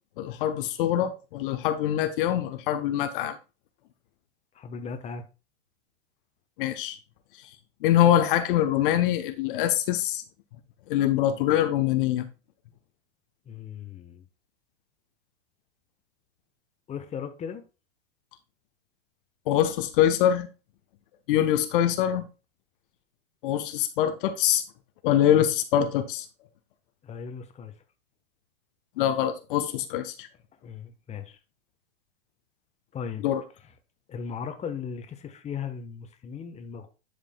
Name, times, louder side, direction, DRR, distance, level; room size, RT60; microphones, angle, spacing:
voice 1, 0.2-3.4 6.6-7.0 7.8-10.2 10.9-12.3 19.5-20.5 21.3-22.3 23.4-24.6 25.0-26.3 29.0-30.3 33.2-33.4, left 11 dB, 55° left, 1.0 m, -24 dB
voice 2, 4.5-5.2 13.4-14.3 16.9-17.6 27.0-27.7 30.6-31.4 32.9-33.3 34.1-36.9, left 6 dB, 20° left, 1.1 m, -37 dB
11.0 x 5.1 x 2.3 m
hypercardioid pair, 110°, 32 cm